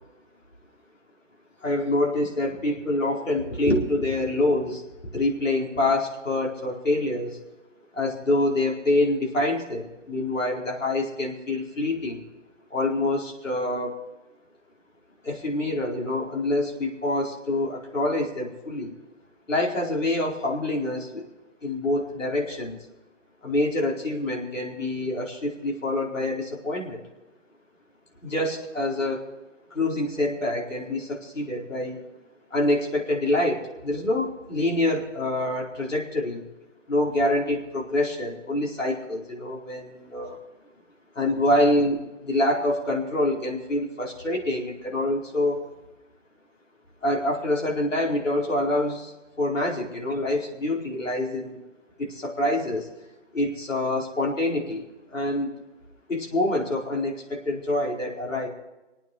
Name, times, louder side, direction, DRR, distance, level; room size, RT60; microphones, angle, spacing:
voice 1, 1.6-7.4 7.9-12.2 12.7-14.0 15.2-18.9 19.5-21.2 21.6-22.8 23.4-27.0 28.2-29.3 29.7-32.0 32.5-36.4 36.9-40.4 41.1-45.6 47.0-51.6 52.0-52.9 53.3-54.8 55.1-55.5 56.1-58.5, left 1 dB, 85° left, -2 dB, 4.6 m, -26 dB
27.5 x 9.1 x 4.7 m, 1.0 s
hypercardioid pair, 165°, 37 cm